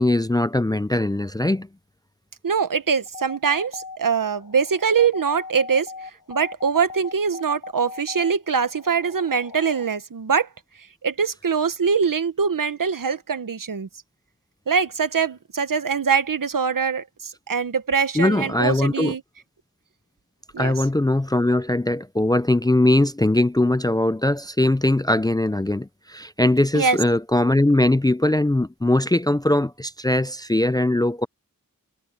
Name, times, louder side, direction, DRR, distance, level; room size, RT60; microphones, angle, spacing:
voice 1, 0.0-1.7 18.1-19.1 20.6-31.3, left 1 dB, 10° left, 0.5 m, -20 dB
voice 2, 2.4-10.5 11.0-13.9 14.7-19.2 20.5-20.7 26.7-27.0, right 6 dB, 65° right, 1.3 m, -23 dB
sound 1, 3.1-9.9, left 4 dB, 70° left, 7.1 m, -39 dB
wide cardioid pair, 75°, 35 cm